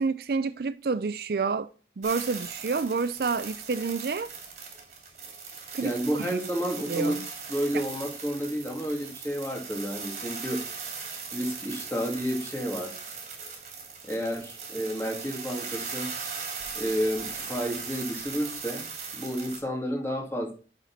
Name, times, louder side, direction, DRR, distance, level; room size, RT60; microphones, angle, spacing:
voice 1, 0.0-1.7 2.0-4.3 5.7-6.3 6.9-7.2 7.7-7.8, right 4 dB, 55° right, 0.4 m, -29 dB
sound 1, 2.0-19.6, right 5 dB, 40° right, 2.7 m, -39 dB
voice 2, 5.8-7.1 7.5-10.6 11.3-13.0 14.0-16.1 16.7-18.8 19.1-20.5, equal, 10° left, 2.6 m, -31 dB
11.0 x 4.3 x 5.6 m
head